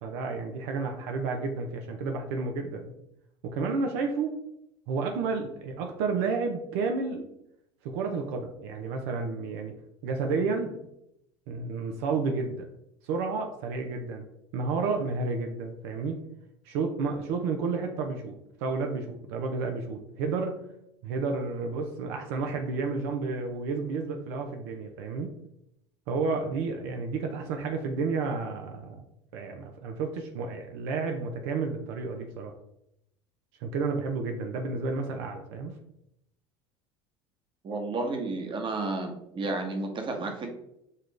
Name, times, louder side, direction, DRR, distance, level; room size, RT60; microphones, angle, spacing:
voice 1, 0.0-2.9 3.4-4.4 4.9-7.3 7.8-9.7 10.0-10.8 11.5-12.7 13.0-14.2 14.5-16.2 16.7-20.6 21.0-25.4 26.1-29.0 29.3-32.5 33.6-35.8, right 4 dB, 70° right, 4 dB, 0.7 m, -31 dB
voice 2, 37.6-40.6, right 2 dB, 35° right, 4 dB, 1.1 m, -32 dB
6.6 x 2.5 x 3.2 m, 0.79 s
hypercardioid pair, 85°, 14 cm